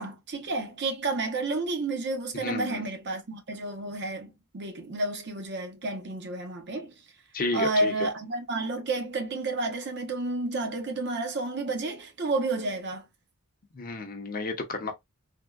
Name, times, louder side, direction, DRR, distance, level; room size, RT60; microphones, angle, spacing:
voice 1, 0.0-6.9 7.5-13.0, right 2 dB, 50° right, 0.7 m, -31 dB
voice 2, 2.3-2.8 7.3-8.1 13.7-14.9, left 3 dB, 40° left, 0.6 m, -32 dB
3.4 x 2.1 x 2.3 m
head